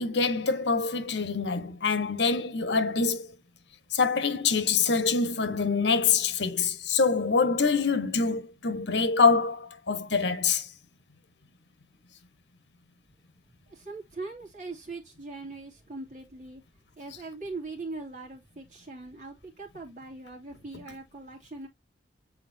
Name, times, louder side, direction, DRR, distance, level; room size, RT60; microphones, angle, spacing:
voice 1, 0.0-3.3 3.9-10.7, left 5 dB, 85° left, 1.2 m, -25 dB
voice 2, 13.7-16.6 17.0-21.7, right 3 dB, 45° right, 2.8 m, -41 dB
8.5 x 4.3 x 2.7 m
head